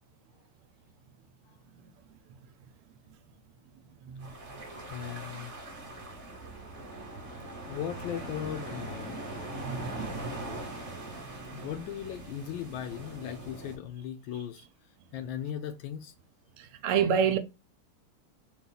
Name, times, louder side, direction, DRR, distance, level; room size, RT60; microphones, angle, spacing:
sound 1, 4.2-13.8, right 1 dB, 40° right, 1.3 m, -42 dB
voice 1, 4.9-5.5 7.7-9.4 9.8-9.9 11.3-14.6 15.1-16.1, left 10 dB, 75° left, 1.2 m, -38 dB
voice 2, 9.5-10.3 11.6-11.7 16.8-17.4, right 7 dB, 90° right, 1.5 m, -29 dB
4.1 x 2.4 x 3.8 m
omnidirectional pair, 2.4 m